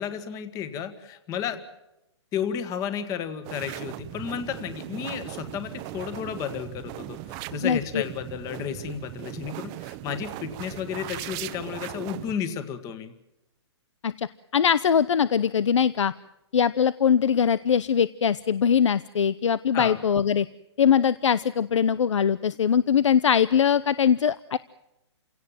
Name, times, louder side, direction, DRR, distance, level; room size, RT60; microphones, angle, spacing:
voice 1, 0.0-1.6 2.3-13.1 19.7-20.0, left 8 dB, 20° left, 11 dB, 1.8 m, -33 dB
sound 1, 3.4-12.3, right 15 dB, 25° right, 0.9 m, -38 dB
voice 2, 7.6-8.0 14.0-14.3 14.5-16.1 16.5-20.5 20.8-24.6, left 7 dB, 90° left, 18 dB, 0.7 m, -22 dB
29.0 x 17.5 x 7.5 m, 0.90 s
hypercardioid pair, 150°, 15 cm